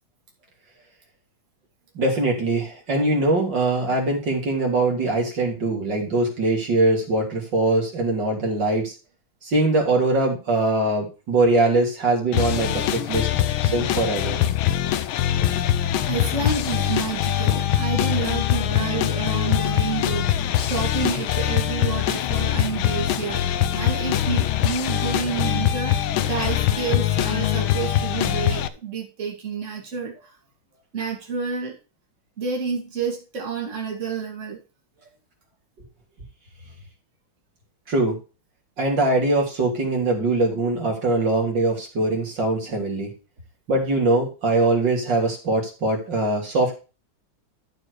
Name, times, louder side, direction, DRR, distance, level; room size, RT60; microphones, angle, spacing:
voice 1, 2.0-8.9 9.4-13.3 13.6-14.4 37.9-38.2 38.8-43.1 43.7-46.7, right 2 dB, 60° right, 0 dB, 3.6 m, -22 dB
sound 1, 12.3-28.7, left 11 dB, 85° left, 1.5 m, -23 dB
voice 2, 15.7-30.3 30.9-31.8 32.4-34.6, right 5 dB, 35° right, -1 dB, 2.9 m, -29 dB
13.0 x 4.7 x 4.7 m, 0.31 s
omnidirectional pair, 2.2 m